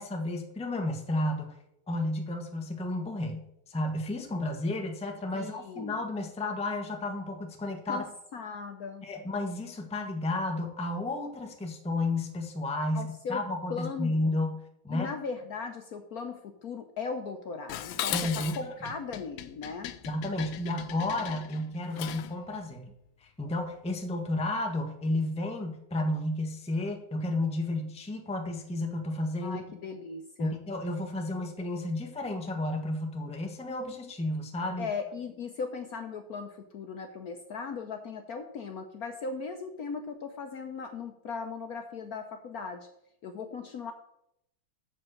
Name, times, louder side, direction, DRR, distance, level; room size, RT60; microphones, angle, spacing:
voice 1, 0.0-1.6 1.9-8.1 9.0-14.6 14.8-15.1 18.1-18.7 20.0-22.9 23.2-29.6 30.4-34.9, left 1 dB, 5° left, 3 dB, 0.8 m, -32 dB
voice 2, 5.3-6.0 7.9-9.0 12.9-13.4 13.7-14.2 14.9-18.5 18.8-19.9 29.4-30.6 34.8-42.9 43.2-43.9, left 5 dB, 60° left, 5 dB, 1.0 m, -38 dB
Dishes pots and pans, 17.7-22.4, left 12 dB, 75° left, 1.3 m, -38 dB
7.4 x 7.3 x 6.3 m, 0.78 s
omnidirectional pair, 2.2 m